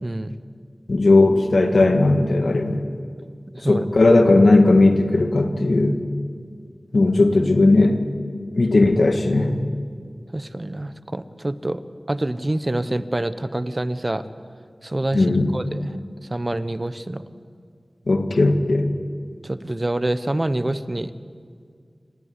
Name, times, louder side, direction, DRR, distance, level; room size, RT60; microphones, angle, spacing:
voice 1, 0.0-0.3 3.5-3.9 10.3-11.8 12.1-14.3 14.8-15.3 15.5-15.9 16.3-17.2 19.4-21.1, right 1 dB, 35° right, 13 dB, 1.0 m, -26 dB
voice 2, 0.9-2.8 3.6-6.0 6.9-8.0 8.5-9.6 15.1-15.5 18.1-18.9, left 2 dB, 80° left, 6 dB, 1.9 m, -17 dB
28.0 x 14.5 x 9.8 m, 2.1 s
wide cardioid pair, 55°, 0 cm